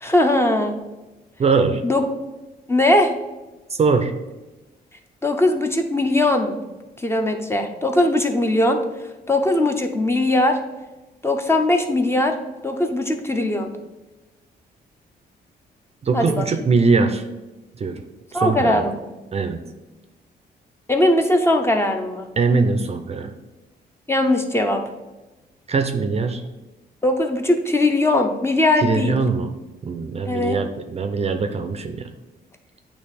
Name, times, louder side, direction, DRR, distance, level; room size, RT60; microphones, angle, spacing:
voice 1, 0.0-0.8 1.8-2.0 2.7-3.1 5.2-6.6 7.0-8.8 9.3-10.6 11.2-12.4 12.6-13.7 16.1-16.5 18.3-19.0 20.9-22.3 24.1-24.8 27.0-29.1 30.3-30.6, left 1 dB, 15° left, 5 dB, 0.7 m, -20 dB
voice 2, 1.4-1.8 3.7-4.2 16.0-17.2 17.8-18.0 18.3-18.8 19.3-19.6 22.4-23.3 25.7-26.4 28.8-29.5 29.8-32.1, right 4 dB, 35° right, 8 dB, 0.5 m, -21 dB
8.6 x 2.9 x 4.1 m, 1.1 s
cardioid pair, 105°, 17 cm